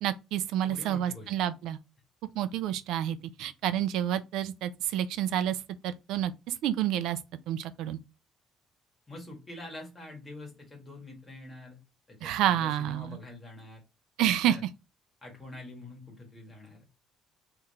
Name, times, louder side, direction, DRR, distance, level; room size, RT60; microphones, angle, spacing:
voice 1, 0.0-1.8 2.4-5.6 5.8-7.2 7.5-8.0 12.2-13.2 14.2-14.6, right 11 dB, 75° right, 0.4 m, -29 dB
voice 2, 0.6-1.3 9.1-11.8 12.1-13.8 14.4-14.6 15.2-16.9, left 2 dB, 15° left, 1.6 m, -45 dB
3.6 x 2.9 x 4.2 m
cardioid pair, 180°, 0 cm